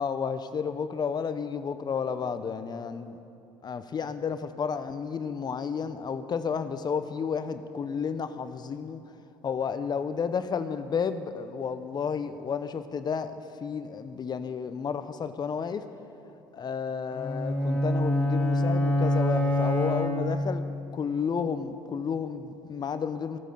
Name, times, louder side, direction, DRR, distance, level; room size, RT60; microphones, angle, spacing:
voice 1, 0.0-3.2 3.6-9.2 9.4-15.8 16.3-20.6 20.9-23.4, left 6 dB, 40° left, 10 dB, 0.8 m, -32 dB
sound 1, 17.1-20.7, left 1 dB, 15° left, 2.2 m, -26 dB
15.5 x 9.0 x 6.8 m, 2.6 s
supercardioid pair, 70°, 11 cm